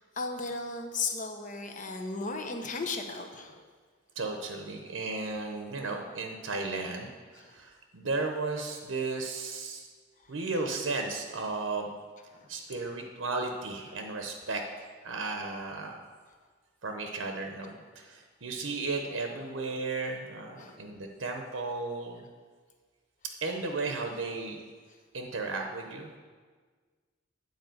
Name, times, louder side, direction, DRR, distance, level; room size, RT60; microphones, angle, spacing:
voice 1, 0.2-3.6 7.3-7.6 12.3-12.5 20.6-20.8, left 3 dB, 40° left, 5 dB, 0.9 m, -35 dB
voice 2, 4.2-9.9 10.3-11.9 12.5-14.6 15.0-16.0 16.8-22.3 23.4-24.6 25.1-26.2, right 3 dB, 70° right, 3 dB, 0.8 m, -34 dB
9.3 x 4.8 x 7.7 m, 1.5 s
head